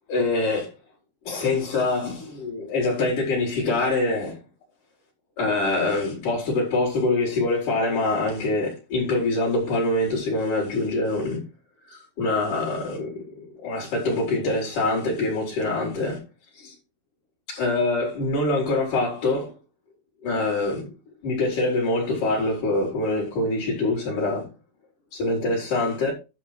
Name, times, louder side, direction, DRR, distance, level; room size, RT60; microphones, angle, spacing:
voice 1, 0.1-0.7 1.3-4.4 5.4-11.4 11.9-13.2 13.6-16.2 16.6-16.7 17.5-19.5 20.2-20.9 21.2-24.5 25.1-26.1, left 2 dB, 55° left, 5.5 m, -24 dB
11.5 x 6.3 x 4.7 m
omnidirectional pair, 4.5 m